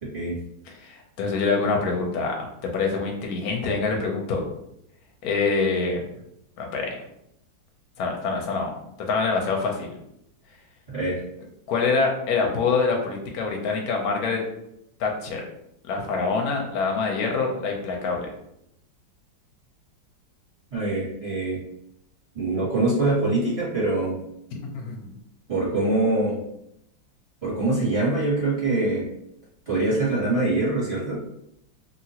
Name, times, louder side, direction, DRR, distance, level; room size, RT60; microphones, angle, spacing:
voice 1, 0.0-0.3 10.9-11.2 20.7-21.6 22.3-24.2 25.5-26.4 27.4-29.1 29.7-31.2, right 2 dB, 20° right, -8 dB, 1.2 m, -24 dB
voice 2, 0.7-2.3 2.7-4.4 5.2-6.0 6.6-7.0 8.0-8.7 9.1-10.0 11.7-14.4 15.0-15.4 15.8-18.3 24.7-25.1, left 4 dB, 65° left, 1 dB, 1.0 m, -25 dB
3.0 x 2.8 x 2.8 m, 0.78 s
omnidirectional pair, 2.0 m